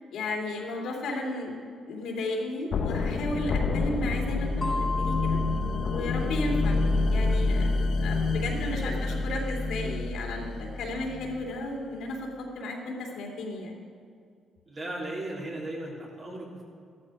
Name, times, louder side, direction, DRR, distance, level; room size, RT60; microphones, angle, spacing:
voice 1, 0.1-1.6 1.9-5.4 5.9-6.8 7.1-7.7 8.0-13.7, left 2 dB, 80° left, -1 dB, 3.1 m, -34 dB
sound 1, 2.7-11.6, left 3 dB, 60° left, 1.1 m, -28 dB
sound 2, 4.6-7.1, left 3 dB, 25° left, 0.6 m, -36 dB
voice 2, 14.7-16.6, right 1 dB, 40° right, -5 dB, 3.7 m, -36 dB
14.0 x 13.0 x 5.0 m, 2.3 s
cardioid pair, 90°, 0 cm